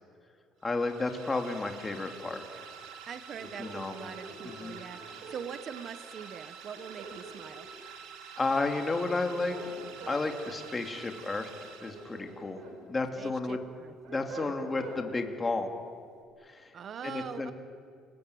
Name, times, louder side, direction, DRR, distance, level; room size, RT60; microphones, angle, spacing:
voice 1, 0.6-2.6 3.6-4.1 4.4-4.7 8.4-9.6 10.1-12.6 12.9-13.6 14.1-15.7 16.5-16.7 17.0-17.5, left 3 dB, 15° left, 4 dB, 2.4 m, -32 dB
sound 1, 0.6-12.5, right 7 dB, 75° right, 3.1 m, -48 dB
voice 2, 3.1-7.7 13.2-13.9 16.7-17.5, right 7 dB, 35° right, 11 dB, 1.1 m, -43 dB
sound 2, 3.3-5.4 6.7-7.8 9.0-10.2 11.7-12.8 13.2-15.0, right 3 dB, 55° right, 6.9 m, -45 dB
30.0 x 21.0 x 9.3 m, 2.3 s
cardioid pair, 160°, 0 cm